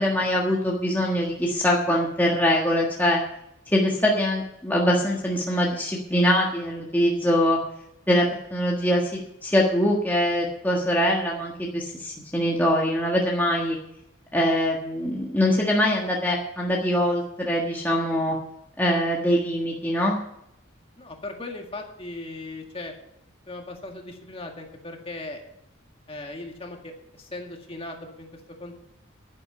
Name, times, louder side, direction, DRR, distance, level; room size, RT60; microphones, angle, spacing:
voice 1, 0.0-3.2 3.7-7.6 8.1-13.8 14.3-18.4 18.8-20.2, equal, 10° left, -3 dB, 1.5 m, -23 dB
voice 2, 21.0-22.9 23.5-25.4 26.1-26.9 27.2-28.3 28.6-28.8, left 2 dB, 25° left, 2 dB, 1.9 m, -38 dB
10.5 x 10.0 x 6.9 m, 0.82 s
head